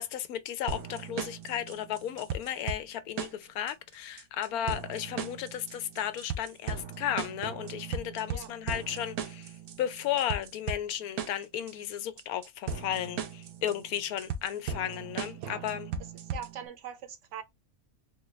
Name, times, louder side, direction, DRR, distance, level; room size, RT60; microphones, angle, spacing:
voice 1, 0.0-9.5 9.8-15.9, left 10 dB, 85° left, 1.1 m, -34 dB
sound 1, 0.7-16.7, right 6 dB, 90° right, 1.2 m, -38 dB
voice 2, 16.3-17.4, right 9 dB, 65° right, 0.8 m, -42 dB
3.7 x 2.3 x 3.1 m
omnidirectional pair, 1.5 m